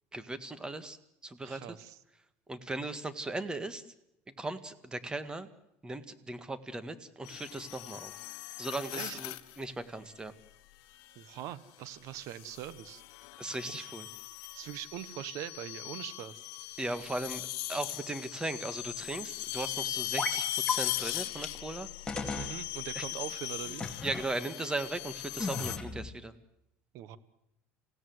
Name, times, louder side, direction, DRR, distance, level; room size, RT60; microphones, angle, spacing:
voice 1, 0.1-1.0 1.2-1.8 2.5-3.8 4.4-5.5 5.8-8.1 8.6-10.3 13.4-14.1 16.8-17.4 17.7-21.9 23.0-23.1 23.7-23.8 24.0-26.3, right 2 dB, 15° right, 11 dB, 1.8 m, -38 dB
voice 2, 1.4-2.0 8.9-9.2 11.1-13.0 13.7-13.9 14.5-16.4 22.4-23.9 26.9-27.2, right 12 dB, 60° right, 15 dB, 1.3 m, -42 dB
sound 1, 7.2-9.6 11.0-11.4 12.2-25.8, left 16 dB, 70° left, 1.3 m, -39 dB
sound 2, 20.2-20.4 20.7-20.8 21.4-21.5 22.1-22.5 23.8-24.3 25.4-26.1, left 4 dB, 15° left, 2.6 m, -35 dB
28.0 x 17.0 x 7.9 m, 0.83 s
supercardioid pair, 105°, 6 cm